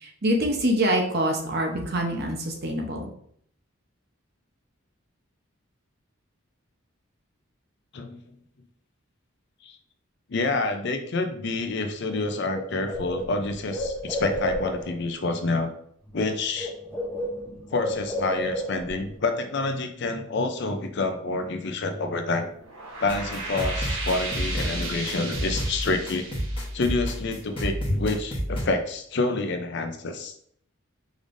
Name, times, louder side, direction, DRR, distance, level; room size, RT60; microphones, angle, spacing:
voice 1, 0.0-3.1, right 1 dB, 50° right, 2 dB, 0.9 m, -25 dB
voice 2, 10.3-15.7 16.1-16.7 17.7-22.5 23.0-26.3 26.7-30.4, left 3 dB, 55° left, 7 dB, 0.5 m, -28 dB
Bird, 12.1-12.2 12.5-15.0 16.1-16.3 16.6-19.0, left 1 dB, 10° left, 0.8 m, -31 dB
sound 1, 22.5-27.8, right 3 dB, 70° right, 1.1 m, -35 dB
sound 2, 23.1-28.6, equal, 25° left, 1.2 m, -31 dB
5.0 x 3.4 x 2.6 m, 0.65 s
head